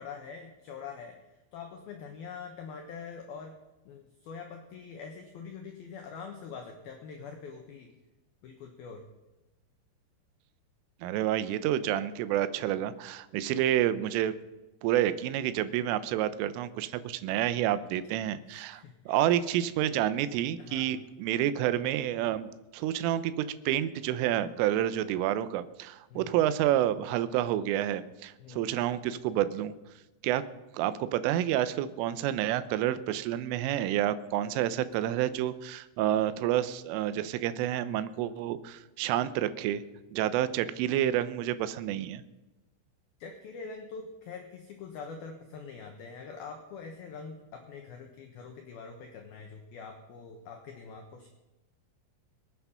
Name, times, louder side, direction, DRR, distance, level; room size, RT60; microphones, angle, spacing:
voice 1, 0.0-3.6 3.9-7.9 8.4-9.1 18.5-19.2 20.6-20.9 26.1-26.4 28.4-28.7 30.3-30.4 43.2-51.3, left 5 dB, 75° left, 3 dB, 2.3 m, -44 dB
voice 2, 11.0-14.4 14.8-29.7 30.2-30.4 30.7-39.8 40.1-42.2, right 12 dB, 80° right, 13 dB, 3.2 m, -29 dB
24.5 x 8.4 x 5.7 m, 1.1 s
omnidirectional pair, 6.0 m